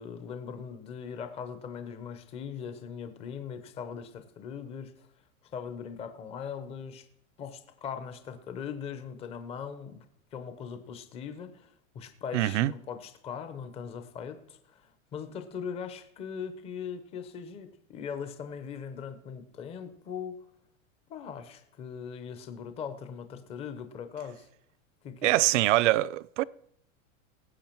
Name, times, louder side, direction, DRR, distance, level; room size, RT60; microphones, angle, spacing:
voice 1, 0.0-5.1 5.5-7.1 7.4-10.0 10.3-20.5 21.1-24.5 25.0-25.5, left 7 dB, 15° left, 0.6 m, -40 dB
voice 2, 12.3-12.7 25.2-26.4, right 17 dB, 60° right, 0.5 m, -24 dB
18.5 x 7.9 x 4.5 m
supercardioid pair, 165°, 41 cm